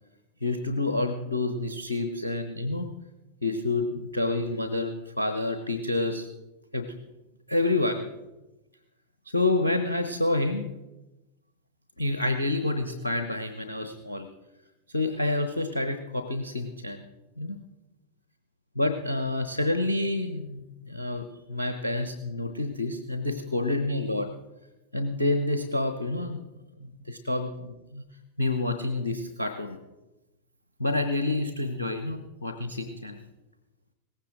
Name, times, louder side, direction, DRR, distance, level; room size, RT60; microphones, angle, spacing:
voice 1, 0.4-2.9 3.4-6.3 6.7-6.9 7.5-8.1 9.2-10.7 12.0-14.3 14.9-17.0 17.4-17.6 18.7-24.3 24.9-26.5 26.8-28.0 28.4-29.8 30.8-33.2, left 2 dB, 80° left, 9 dB, 1.0 m, -28 dB
18.0 x 16.0 x 3.9 m, 1.0 s
figure-of-eight pair, 90°, 0 cm